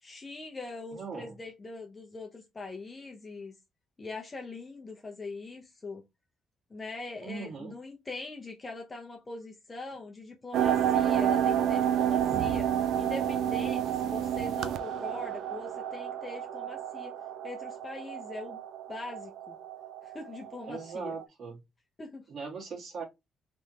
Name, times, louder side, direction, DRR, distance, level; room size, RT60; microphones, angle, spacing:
voice 1, 0.0-3.5 4.0-6.0 6.7-12.7 13.0-17.1 17.4-18.6 18.9-19.6 20.0-21.1 22.0-22.2, left 3 dB, 25° left, 0.8 m, -42 dB
voice 2, 0.9-1.3 7.2-7.7 20.7-21.6 22.3-23.0, right 5 dB, 55° right, 2.0 m, -39 dB
sound 1, 10.5-21.2, right 9 dB, 75° right, 0.5 m, -30 dB
3.5 x 3.2 x 2.9 m
cardioid pair, 90°, 0 cm